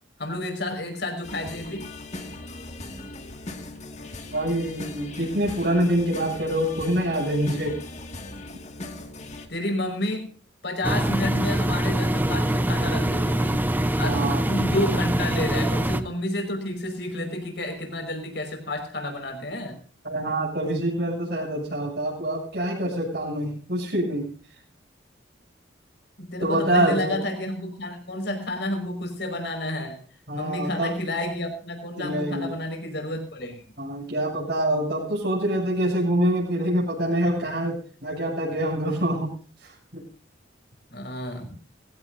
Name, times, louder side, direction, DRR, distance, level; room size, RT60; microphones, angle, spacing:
voice 1, 0.2-1.9 9.5-10.3 10.6-19.8 26.2-30.0 30.3-33.6 40.9-41.6, left 1 dB, 60° left, 4 dB, 5.4 m, -30 dB
sound 1, 1.2-9.5, left 2 dB, 40° left, 2.1 m, -39 dB
voice 2, 4.3-7.8 14.0-14.4 20.0-24.3 26.4-27.2 30.3-30.9 32.0-32.5 33.8-39.3 39.6-40.0, right 1 dB, 55° right, -5 dB, 7.5 m, -25 dB
Engine, 10.8-16.0, right 1 dB, 10° right, 0.8 m, -24 dB
21.5 x 16.5 x 2.7 m, 0.41 s
head